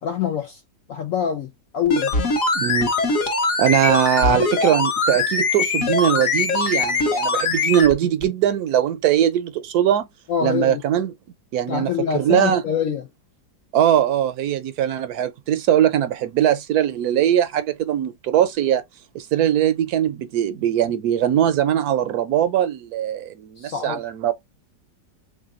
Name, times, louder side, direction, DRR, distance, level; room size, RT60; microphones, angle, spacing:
voice 1, 0.0-0.6 0.9-2.1 10.3-10.8 11.7-13.1 23.6-24.0, left 8 dB, 80° left, 0.7 m, -25 dB
sound 1, 1.9-7.9 8.2-8.3, left 3 dB, 55° left, 1.3 m, -22 dB
voice 2, 2.5-2.9 3.6-10.1 10.4-11.1 11.5-12.6 13.7-18.8 19.1-24.3, right 10 dB, 70° right, 0.9 m, -21 dB
3.5 x 3.3 x 2.4 m
omnidirectional pair, 2.0 m